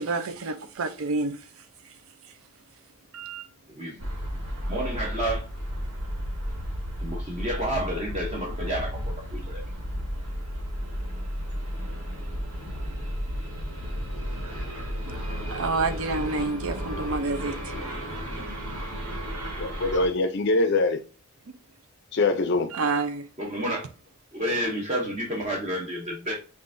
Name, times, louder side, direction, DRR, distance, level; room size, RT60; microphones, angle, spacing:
voice 1, 0.0-1.9 3.1-3.4 15.5-17.7 21.5-21.6 22.7-23.3, right 3 dB, 65° right, 0.5 m, -29 dB
voice 2, 3.7-4.1 4.7-5.5 7.0-9.0 9.3-9.6 23.4-23.9 24.3-26.4, right 1 dB, 30° right, 0.7 m, -30 dB
sound 1, 4.0-20.1, equal, 85° right, 1.6 m, -33 dB
voice 3, 19.6-21.0 22.1-22.7, left 3 dB, 50° left, 0.4 m, -23 dB
5.4 x 2.5 x 2.5 m
head